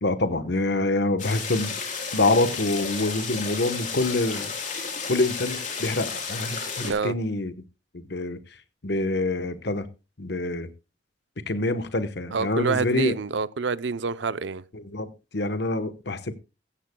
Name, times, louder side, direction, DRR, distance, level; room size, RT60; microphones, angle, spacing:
voice 1, 0.0-1.8 2.1-4.5 5.1-7.5 7.9-8.4 8.8-9.9 10.2-10.7 11.5-13.1 14.7-16.3, left 2 dB, 65° left, 1.1 m, -26 dB
sound 1, 1.2-6.9, left 5 dB, 45° left, 3.5 m, -32 dB
voice 2, 6.8-7.1 12.3-14.6, right 5 dB, 75° right, 0.6 m, -27 dB
15.0 x 14.5 x 2.2 m
head